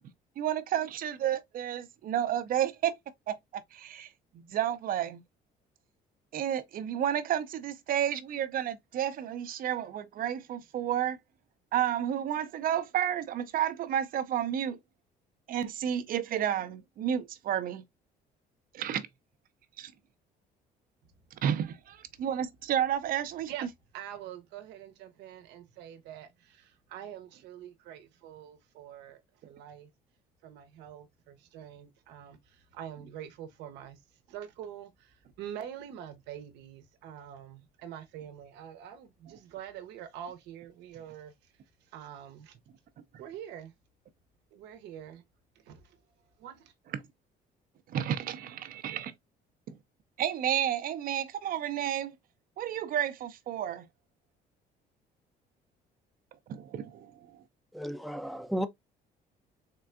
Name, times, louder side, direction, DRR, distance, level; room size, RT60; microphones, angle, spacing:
voice 1, 0.4-3.0 3.3-4.1 4.3-5.2 6.3-11.2 11.7-14.8 15.5-17.8 18.7-19.1 19.8-19.9 21.4-23.5 47.9-49.1 49.7-49.8 50.2-52.1 52.6-53.9 56.5-57.4, right 10 dB, 55° right, 0.6 m, -31 dB
voice 2, 23.9-29.9 30.4-34.0 34.3-41.3 41.9-42.5 43.2-43.7 44.5-45.2 45.6-46.0 46.4-46.7, right 10 dB, 90° right, 0.9 m, -45 dB
voice 3, 57.7-58.7, equal, ahead, 0.5 m, -33 dB
3.7 x 3.3 x 2.4 m
cardioid pair, 110°, 17 cm